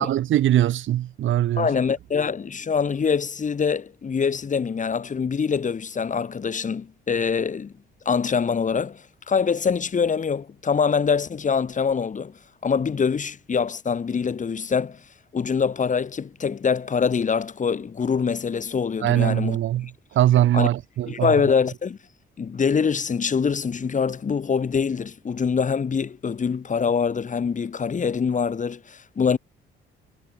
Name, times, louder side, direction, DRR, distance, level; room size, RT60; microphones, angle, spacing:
voice 1, 0.0-1.7 19.0-19.9 20.1-21.3, right 13 dB, 75° right, 2.9 m, -21 dB
voice 2, 1.6-7.7 8.1-12.3 12.6-15.0 15.3-19.6 20.5-20.7 21.1-22.0 22.4-29.4, left 6 dB, 40° left, 2.4 m, -24 dB
cardioid pair, 90°, 20 cm